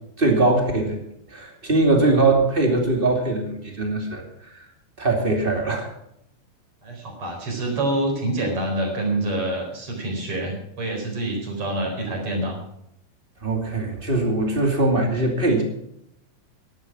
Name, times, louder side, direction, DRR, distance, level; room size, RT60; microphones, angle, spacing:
voice 1, 0.2-1.0 1.3-4.2 5.0-5.9 13.4-15.6, right 2 dB, 15° right, 2 dB, 2.1 m, -21 dB
voice 2, 6.8-12.6, right 1 dB, 35° right, 1 dB, 5.0 m, -26 dB
12.0 x 12.0 x 6.0 m, 0.76 s
omnidirectional pair, 4.2 m